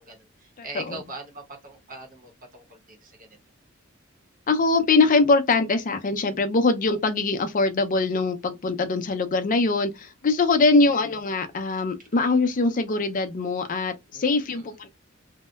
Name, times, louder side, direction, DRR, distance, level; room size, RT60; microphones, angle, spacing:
voice 1, 0.0-3.2 11.7-12.1 14.1-14.6, right 2 dB, 40° right, 0.9 m, -42 dB
voice 2, 0.6-1.0 4.5-14.9, left 3 dB, 40° left, 0.5 m, -22 dB
2.7 x 2.1 x 2.2 m
head